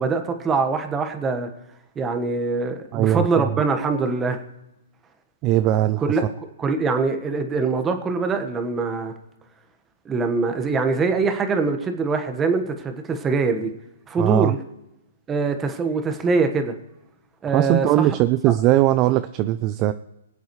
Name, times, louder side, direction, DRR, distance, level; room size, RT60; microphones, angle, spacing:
voice 1, 0.0-1.5 1.9-4.4 6.0-6.2 6.6-9.1 10.0-13.7 14.1-14.6 15.3-16.7 17.4-18.0, right 4 dB, 15° right, 6 dB, 1.3 m, -23 dB
voice 2, 2.9-3.5 5.4-6.2 14.2-14.5 17.5-19.9, right 14 dB, 30° right, 13 dB, 0.4 m, -20 dB
24.0 x 8.1 x 3.2 m, 0.92 s
hypercardioid pair, 140°, 0 cm